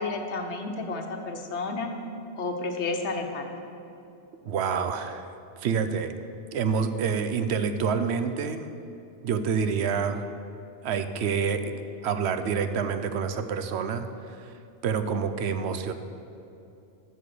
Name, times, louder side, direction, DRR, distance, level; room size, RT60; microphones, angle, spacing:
voice 1, 0.0-1.9 2.3-3.5, left 3 dB, 75° left, 4 dB, 1.2 m, -31 dB
voice 2, 4.4-5.3 5.6-6.1 6.5-8.7 9.2-10.3 10.8-11.7 12.0-14.6 14.8-15.9, right 6 dB, 70° right, 9 dB, 0.8 m, -27 dB
8.6 x 6.8 x 6.7 m, 2.8 s
omnidirectional pair, 1.2 m